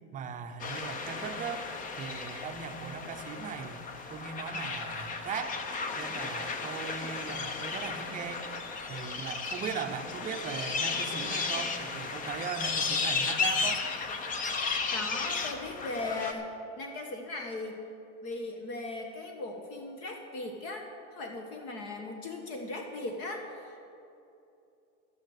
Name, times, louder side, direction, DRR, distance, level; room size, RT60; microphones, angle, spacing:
voice 1, 0.1-1.7 2.0-3.8 4.1-5.6 6.0-8.5 8.9-13.8, right 7 dB, 25° right, 7 dB, 0.7 m, -38 dB
sound 1, 0.6-16.3, left 4 dB, 25° left, 0.8 m, -34 dB
voice 2, 14.9-16.5 16.8-17.8 18.2-23.9, left 2 dB, 45° left, 3 dB, 1.4 m, -38 dB
12.5 x 9.5 x 6.5 m, 2.7 s
supercardioid pair, 150°, 34 cm